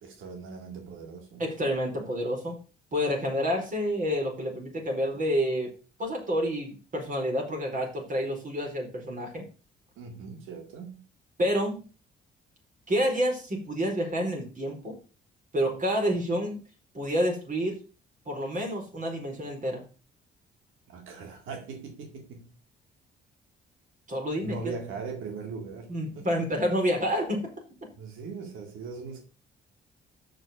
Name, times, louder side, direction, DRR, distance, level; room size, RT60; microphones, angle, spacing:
voice 1, 0.0-1.5 10.0-11.0 20.9-22.5 24.4-26.3 27.9-29.2, right 4 dB, 85° right, 2.2 m, -40 dB
voice 2, 1.4-2.6 2.9-5.7 6.0-9.4 11.4-11.8 12.9-15.0 15.5-16.6 16.9-17.8 18.2-19.8 24.1-24.6 25.9-27.5, equal, 40° right, 4.7 m, -28 dB
6.5 x 6.3 x 7.6 m
cardioid pair, 90°, 20 cm